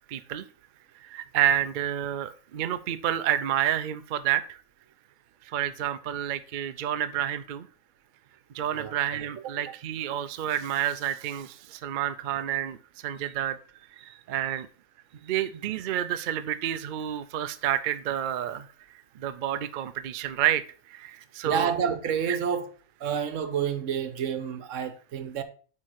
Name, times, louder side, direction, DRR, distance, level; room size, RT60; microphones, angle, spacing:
voice 1, 0.1-0.4 1.0-4.6 5.5-7.7 8.5-13.6 14.0-14.7 15.2-18.7 19.1-21.7, right 11 dB, 90° right, 0.4 m, -29 dB
voice 2, 21.4-22.7 23.0-25.4, right 7 dB, 65° right, 1.1 m, -29 dB
8.6 x 3.7 x 4.6 m
omnidirectional pair, 1.5 m